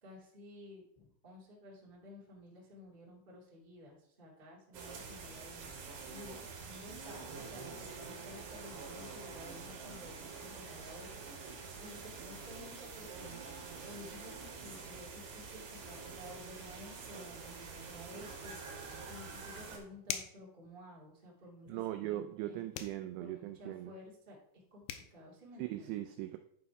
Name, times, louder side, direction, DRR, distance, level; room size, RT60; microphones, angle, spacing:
voice 1, 0.0-13.3 13.8-22.6 23.2-26.0, left 1 dB, 20° right, -6 dB, 1.3 m, -53 dB
sound 1, 4.7-19.8, right 4 dB, 65° right, 3.5 m, -47 dB
sound 2, 20.0-20.5 22.7-23.0 24.5-24.6 24.9-25.1, left 10 dB, 90° left, 2.5 m, -40 dB
voice 2, 21.7-23.9 25.6-26.4, right 14 dB, 90° right, 8 dB, 2.5 m, -39 dB
11.0 x 4.1 x 4.7 m, 0.69 s
omnidirectional pair, 5.6 m